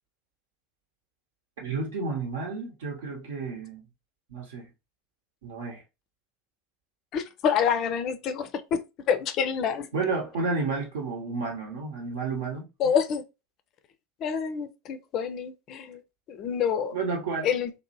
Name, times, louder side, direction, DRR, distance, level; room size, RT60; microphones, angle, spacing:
voice 1, 1.6-3.9 4.3-4.7 5.4-5.8 9.9-12.9 16.9-17.5, right 4 dB, 65° right, 0.9 m, -31 dB
voice 2, 7.1-8.8 9.1-9.9 12.8-13.2 14.2-16.0 16.3-17.0 17.4-17.7, left 7 dB, 45° left, 0.4 m, -27 dB
2.7 x 2.1 x 2.6 m
figure-of-eight pair, 80°, 0 cm